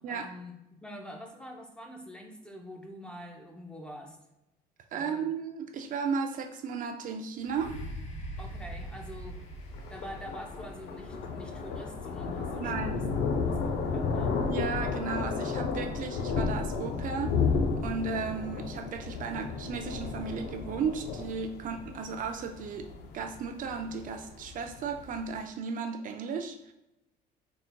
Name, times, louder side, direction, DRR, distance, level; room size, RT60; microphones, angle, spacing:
voice 1, 0.0-4.2 4.9-5.3 8.4-9.4 9.9-13.0 13.4-14.3, left 1 dB, 5° left, 2 dB, 0.5 m, -45 dB
voice 2, 4.9-7.8 12.6-13.1 14.5-22.9 23.1-26.7, right 5 dB, 50° right, 5 dB, 0.4 m, -35 dB
sound 1, 7.4-15.1 15.8-15.9, right 1 dB, 40° left, 1.0 m, -44 dB
Thunder, 8.4-25.3, left 5 dB, 75° left, 0.5 m, -33 dB
3.9 x 3.7 x 2.2 m, 0.90 s
cardioid pair, 110°, 17 cm